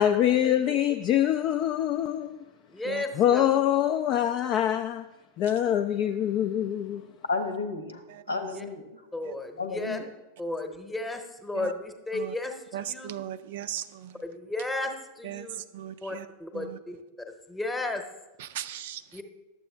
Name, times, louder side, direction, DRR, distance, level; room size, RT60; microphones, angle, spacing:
voice 1, 0.0-2.4 3.2-5.0 5.4-7.0, left 11 dB, 35° left, 0.4 m, -24 dB
voice 2, 2.7-3.4 8.5-8.6 9.1-10.0 10.4-13.1 14.2-15.6 16.0-17.0 17.5-18.0 19.1-19.2, left 2 dB, 10° left, 0.9 m, -34 dB
voice 3, 7.2-8.0 8.3-9.0 9.6-10.0, left 4 dB, 75° left, 1.0 m, -32 dB
voice 4, 12.7-14.2 15.2-16.3 16.5-16.8 18.4-19.2, right 11 dB, 55° right, 0.4 m, -38 dB
11.5 x 7.6 x 3.3 m
figure-of-eight pair, 90°, 0 cm